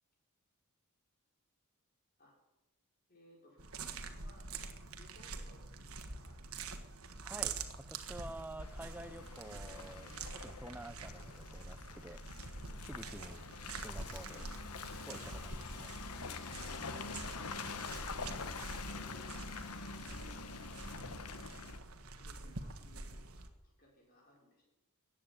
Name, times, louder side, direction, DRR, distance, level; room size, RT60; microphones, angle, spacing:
voice 1, 3.1-4.5 4.9-6.4 13.3-13.6 14.3-14.7 15.3-15.5 18.8-24.6, left 1 dB, 40° left, -1 dB, 5.4 m, -63 dB
sound 1, 3.6-23.5, right 4 dB, 70° right, 1.5 m, -46 dB
voice 2, 7.2-12.2 12.9-13.4 13.8-14.4 15.1-16.0, right 1 dB, 10° right, 12 dB, 0.6 m, -49 dB
Car passing by / Engine, 8.6-21.8, left 4 dB, 90° left, 1.2 m, -46 dB
14.5 x 9.1 x 9.8 m, 0.99 s
head